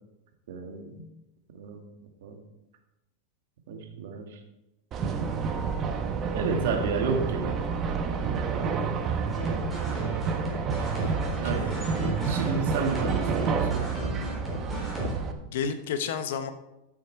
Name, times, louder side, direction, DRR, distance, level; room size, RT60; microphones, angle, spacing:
voice 1, 0.5-1.1 1.5-1.8 2.2-2.4 3.7-4.4 6.3-7.6 11.4-11.8 12.2-14.0, right 5 dB, 75° right, 4 dB, 1.9 m, -31 dB
sound 1, 4.9-15.3, right 5 dB, 30° right, 1.1 m, -29 dB
sound 2, 9.3-15.1, right 1 dB, 5° right, 3.8 m, -35 dB
voice 2, 11.2-12.5 15.4-16.5, left 7 dB, 75° left, 9 dB, 1.1 m, -33 dB
12.0 x 7.4 x 4.6 m, 0.93 s
supercardioid pair, 140°, 0 cm